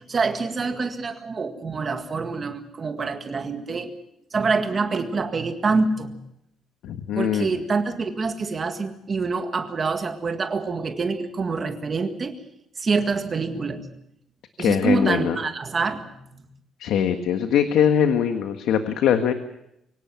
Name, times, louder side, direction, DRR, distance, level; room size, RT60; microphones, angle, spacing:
voice 1, 0.1-3.9 4.3-6.1 7.2-12.3 12.8-13.9 14.6-16.4, right 4 dB, 25° right, 6 dB, 1.9 m, -26 dB
voice 2, 6.8-7.5 14.6-15.4 16.8-19.3, left 8 dB, 70° left, 7 dB, 1.5 m, -22 dB
24.0 x 17.5 x 7.5 m, 0.81 s
cardioid pair, 180°, 0 cm